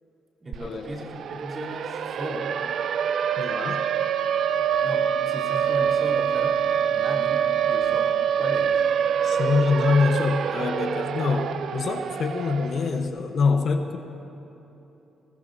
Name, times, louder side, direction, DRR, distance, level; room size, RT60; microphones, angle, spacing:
voice 1, 0.4-2.6 4.5-6.6 6.9-8.1 8.4-8.7, right 1 dB, 30° right, -6 dB, 3.4 m, -36 dB
Siren, 0.5-0.6 0.9-13.0, right 8 dB, 65° right, 0.5 m, -25 dB
voice 2, 3.4-3.8 9.2-14.0, left 4 dB, 55° left, 6 dB, 0.9 m, -25 dB
20.0 x 19.0 x 2.7 m, 3.0 s
cardioid pair, 90°, 0 cm